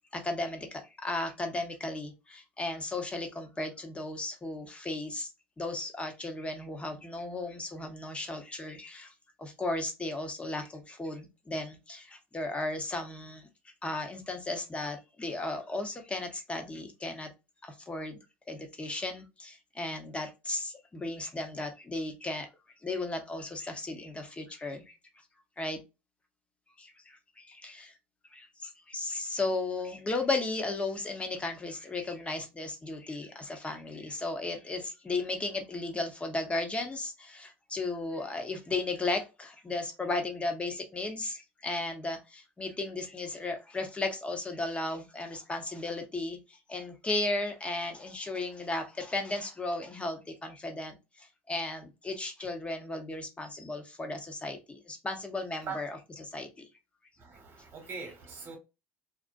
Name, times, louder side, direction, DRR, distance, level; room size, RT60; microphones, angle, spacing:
voice 1, 0.1-5.3 5.6-9.1 9.4-13.5 13.8-17.3 17.6-18.2 18.5-22.5 22.8-25.0 25.6-25.8 26.8-28.0 28.3-56.7, left 2 dB, 20° left, 0.8 m, -35 dB
voice 2, 57.2-58.6, right 5 dB, 40° right, 1.1 m, -41 dB
2.5 x 2.1 x 2.4 m
supercardioid pair, 85°, 6 cm